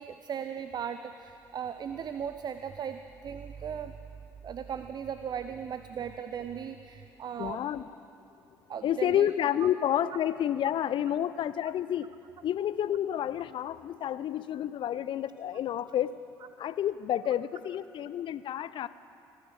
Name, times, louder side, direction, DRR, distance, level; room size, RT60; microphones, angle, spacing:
voice 1, 0.0-3.9 4.4-7.6 8.7-9.3, right 8 dB, 40° right, 10 dB, 0.5 m, -37 dB
voice 2, 7.4-7.9 8.8-12.1 12.4-16.1 16.6-18.9, left 10 dB, 50° left, 16 dB, 0.6 m, -30 dB
19.0 x 10.0 x 6.1 m, 2.5 s
figure-of-eight pair, 50°, 11 cm